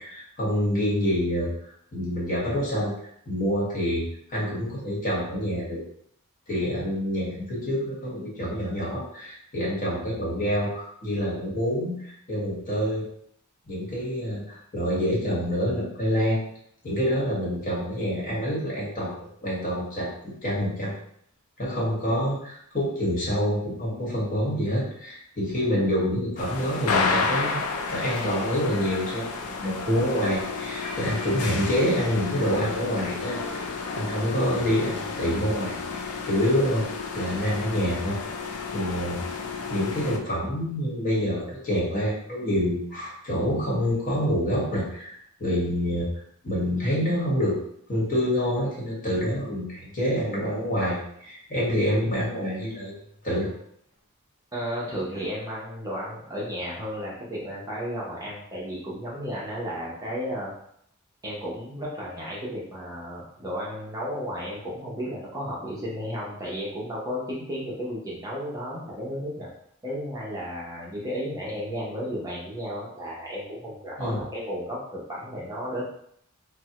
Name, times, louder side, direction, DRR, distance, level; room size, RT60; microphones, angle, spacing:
voice 1, 0.0-1.5 1.9-2.9 3.3-5.8 6.5-13.0 13.7-16.4 16.8-20.9 21.6-33.6 33.9-35.7 36.2-36.8 37.1-38.2 38.7-39.2 39.7-45.1 45.4-46.1 46.4-47.6 47.9-52.9 53.2-53.5 74.0-74.2, equal, 40° left, -6 dB, 1.2 m, -27 dB
sound 1, 26.4-40.2, left 4 dB, 85° left, 0.4 m, -31 dB
voice 2, 54.5-60.5 61.2-69.5 69.8-75.8, equal, 15° right, -6 dB, 0.6 m, -33 dB
3.3 x 2.1 x 2.8 m, 0.69 s
head